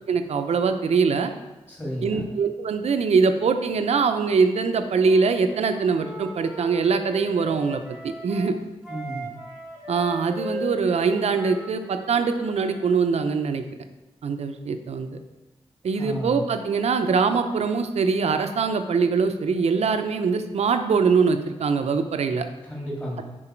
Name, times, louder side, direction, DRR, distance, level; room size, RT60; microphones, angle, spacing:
voice 1, 0.1-1.3 2.0-7.8 8.2-8.6 9.9-13.6 14.2-15.1 15.8-22.5, right 5 dB, 70° right, 7 dB, 0.6 m, -23 dB
voice 2, 1.7-2.3 8.9-9.3 16.0-16.4 22.6-23.2, equal, 15° left, -4 dB, 2.5 m, -32 dB
Wind instrument woodwind instrument, 4.9-12.9, equal, 5° right, 1.5 m, -38 dB
9.9 x 4.7 x 4.5 m, 1.1 s
wide cardioid pair, 175°, 11 cm